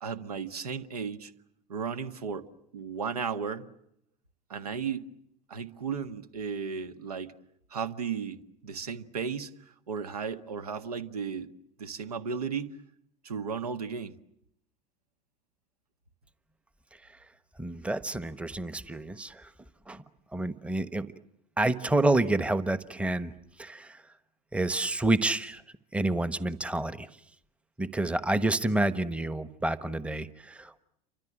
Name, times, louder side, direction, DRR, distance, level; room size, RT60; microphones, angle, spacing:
voice 1, 0.0-1.3 1.7-2.5 2.7-3.7 4.5-5.1 5.5-7.3 7.7-11.5 11.8-12.8 13.2-14.1, right 6 dB, 75° right, 1.7 m, -35 dB
voice 2, 17.6-19.5 19.9-20.0 20.3-21.1 21.6-23.3 23.6-24.0 24.5-25.6 25.9-27.1 27.8-30.8, right 2 dB, 5° right, 1.2 m, -28 dB
29.5 x 25.5 x 7.7 m
figure-of-eight pair, 75°, 20 cm